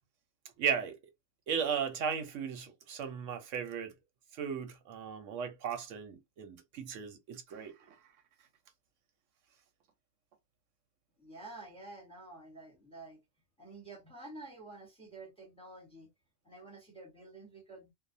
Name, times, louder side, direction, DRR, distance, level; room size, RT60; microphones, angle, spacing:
voice 1, 0.6-1.0 1.5-3.9 4.4-7.7, right 7 dB, 85° right, 1.0 m, -36 dB
voice 2, 11.2-13.2 13.6-16.1 16.4-17.9, right 2 dB, 5° left, 0.9 m, -50 dB
2.6 x 2.1 x 2.6 m
omnidirectional pair, 1.3 m